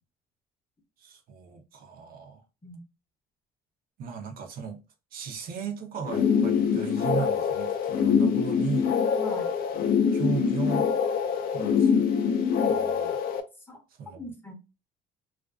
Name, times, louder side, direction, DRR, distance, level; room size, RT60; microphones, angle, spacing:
voice 1, 1.0-2.4 4.0-4.8 5.1-9.0 10.1-10.9 11.5-12.1 12.6-13.2 14.0-14.3, right 6 dB, 60° right, 0.6 m, -35 dB
sound 1, 6.0-13.4, left 6 dB, 60° left, 0.4 m, -24 dB
voice 2, 9.2-9.5 11.6-12.0 13.7-13.8 14.2-14.5, left 2 dB, 15° left, 0.6 m, -40 dB
2.5 x 2.2 x 2.2 m
cardioid pair, 110°, 17 cm